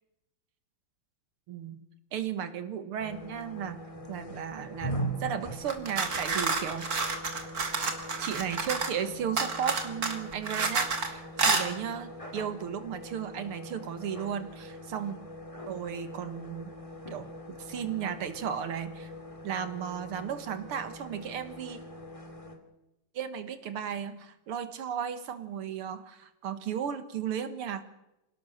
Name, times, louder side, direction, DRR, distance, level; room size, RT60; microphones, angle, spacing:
voice 1, 1.5-1.8 2.1-3.8 4.1-6.9 8.2-15.2 15.7-16.7 17.1-19.1 19.4-21.8 23.1-27.8, right 8 dB, 90° right, 10 dB, 2.3 m, -35 dB
sound 1, 3.0-22.6, right 1 dB, 15° left, 2.5 m, -42 dB
sound 2, 5.7-9.0 9.4-11.1 11.4-11.7, right 4 dB, 45° right, 2.6 m, -29 dB
27.0 x 17.5 x 6.6 m, 0.91 s
omnidirectional pair, 2.3 m